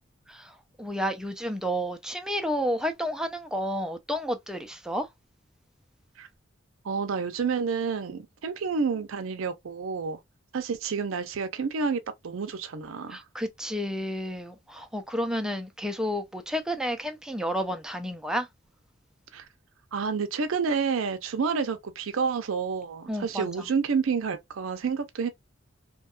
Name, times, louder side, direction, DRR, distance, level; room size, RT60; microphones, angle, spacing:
voice 1, 0.3-5.1 13.1-18.5 23.1-23.7, equal, 5° right, 0.4 m, -31 dB
voice 2, 6.8-10.2 10.5-13.2 19.3-19.5 19.9-25.3, right 5 dB, 75° right, 0.5 m, -29 dB
2.8 x 2.2 x 2.3 m
head